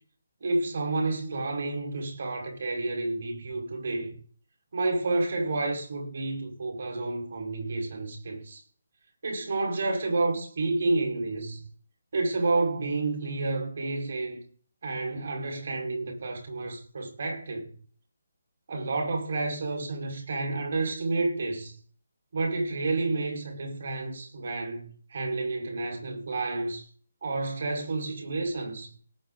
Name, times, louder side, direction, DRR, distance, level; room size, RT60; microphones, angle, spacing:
voice 1, 0.4-4.1 4.7-8.6 9.2-11.6 12.1-14.4 14.8-17.7 18.7-21.7 22.3-26.8 27.2-28.9, right 2 dB, 60° right, 5.4 m, -30 dB
19.0 x 7.7 x 4.1 m
figure-of-eight pair, 150°, 0 cm